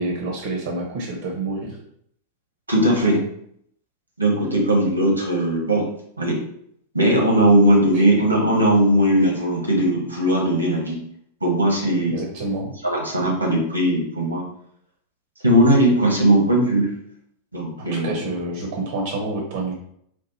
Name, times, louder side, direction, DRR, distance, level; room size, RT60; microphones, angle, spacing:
voice 1, 0.0-1.8 7.9-8.1 12.1-12.7 17.8-19.7, right 2 dB, 55° right, 0 dB, 0.9 m, -28 dB
voice 2, 2.7-3.2 4.2-5.9 6.2-6.4 6.9-11.0 11.4-12.2 12.8-14.4 15.4-16.9 17.5-18.2, right 1 dB, 85° right, -1 dB, 1.3 m, -18 dB
4.5 x 2.4 x 4.1 m, 0.70 s
figure-of-eight pair, 90°, 0 cm